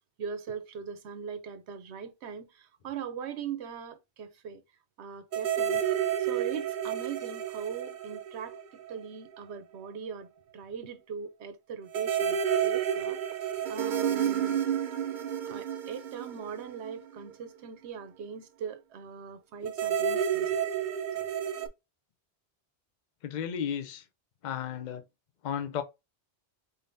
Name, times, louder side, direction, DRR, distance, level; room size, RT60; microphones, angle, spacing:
voice 1, 0.2-4.6 5.0-5.8 6.2-14.6 15.5-20.7, right 7 dB, 80° right, 1.0 m, -40 dB
sound 1, 5.3-9.1 9.3-9.4 11.9-17.3 19.7-21.7, right 9 dB, 55° right, 0.7 m, -30 dB
voice 2, 23.2-24.0 24.4-25.0 25.4-25.8, left 8 dB, 50° left, 0.6 m, -33 dB
4.0 x 3.6 x 2.6 m
omnidirectional pair, 1.1 m